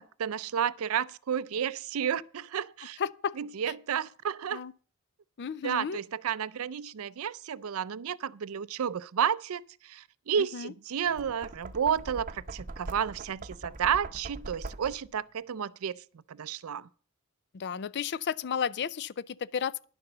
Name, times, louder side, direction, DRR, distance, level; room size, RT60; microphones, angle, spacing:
voice 1, 0.0-3.0 3.4-4.6 5.6-16.0 16.3-16.9, right 8 dB, 70° right, 0.4 m, -31 dB
voice 2, 3.0-3.4 3.7-3.8 4.5-4.7 5.4-6.0 10.4-10.7 17.5-19.8, left 7 dB, 50° left, 0.4 m, -33 dB
Knock, 11.0-15.2, right 3 dB, 40° right, 0.7 m, -42 dB
11.0 x 6.8 x 6.6 m
head